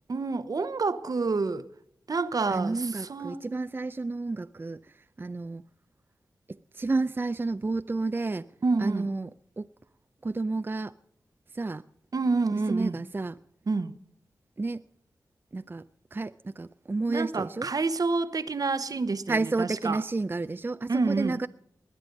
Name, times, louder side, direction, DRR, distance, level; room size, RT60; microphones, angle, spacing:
voice 1, 0.1-1.7 2.1-3.4 8.6-9.1 12.1-13.0 13.7-13.9 17.1-20.0 20.9-21.4, right 4 dB, 60° right, 0.9 m, -28 dB
voice 2, 2.5-4.8 5.2-5.6 6.5-8.5 8.8-9.7 10.2-10.9 11.5-11.8 12.5-13.4 14.6-14.8 15.5-15.8 16.1-17.7 19.3-21.5, right 3 dB, 30° right, 0.4 m, -31 dB
20.5 x 9.0 x 5.3 m
cardioid pair, 40°, 7 cm